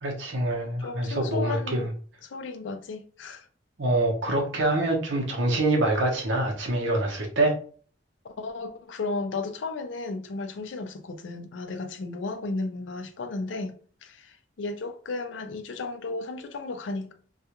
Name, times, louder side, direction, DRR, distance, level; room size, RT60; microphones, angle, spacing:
voice 1, 0.0-1.9 3.8-7.5, right 2 dB, 70° right, 0.8 m, -25 dB
voice 2, 0.8-1.9 2.2-3.5 8.2-13.7 14.0-17.1, left 3 dB, 70° left, 0.4 m, -34 dB
2.4 x 2.2 x 2.8 m
head